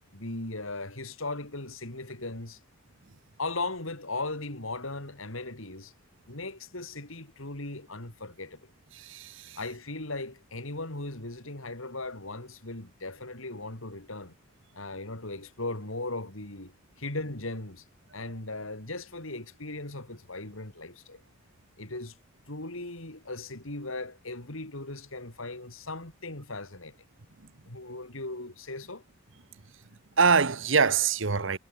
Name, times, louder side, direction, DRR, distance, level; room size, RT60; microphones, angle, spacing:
voice 1, 0.1-2.6 3.4-5.9 6.3-8.6 9.6-14.3 14.7-17.8 18.1-21.2 21.8-22.1 22.5-27.0 27.7-29.0, left 2 dB, 75° left, 4.0 m, -38 dB
voice 2, 8.9-9.6 30.2-31.6, right 5 dB, 65° right, 1.2 m, -24 dB
head